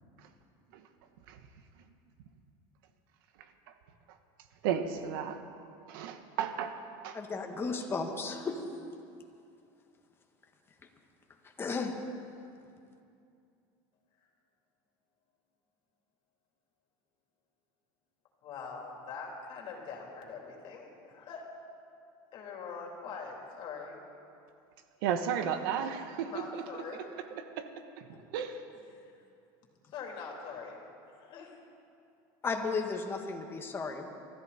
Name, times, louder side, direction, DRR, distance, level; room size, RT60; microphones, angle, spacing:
voice 1, 4.6-5.4 5.9-6.8 7.0-7.2 25.0-26.6 26.9-27.0 27.6-27.7 28.0-28.6, right 8 dB, 85° right, 8 dB, 1.4 m, -34 dB
voice 2, 7.1-8.6 11.6-12.0 32.4-34.1, left 4 dB, 20° left, 3 dB, 1.7 m, -34 dB
voice 3, 18.4-21.4 22.3-24.0 26.3-27.1 28.1-28.2 28.9-29.1 29.8-30.8 31.1-31.6, left 5 dB, 45° left, -1 dB, 3.6 m, -43 dB
23.5 x 14.0 x 4.3 m, 2.5 s
supercardioid pair, 130°, 11 cm